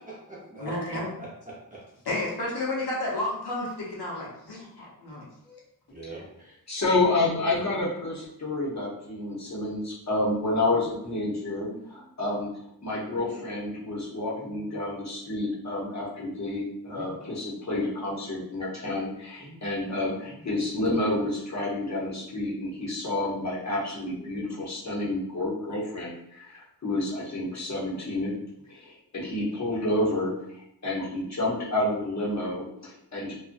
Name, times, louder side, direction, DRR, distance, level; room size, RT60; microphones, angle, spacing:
voice 1, 0.0-1.8 5.9-6.5 11.2-11.9 13.1-13.3 14.3-14.6 16.9-17.1 17.9-18.0 19.4-19.6 20.2-20.5 20.7-20.8 22.5-22.6 24.2-24.4, right 2 dB, 20° right, -6 dB, 0.8 m, -44 dB
voice 2, 0.6-1.1 2.0-5.6, left 2 dB, 85° left, -5 dB, 1.0 m, -32 dB
voice 3, 6.7-12.5 12.8-28.3 28.7-30.3 30.8-33.3, left 2 dB, 45° left, -5 dB, 0.9 m, -29 dB
2.6 x 2.3 x 2.5 m, 0.77 s
wide cardioid pair, 135°, 38 cm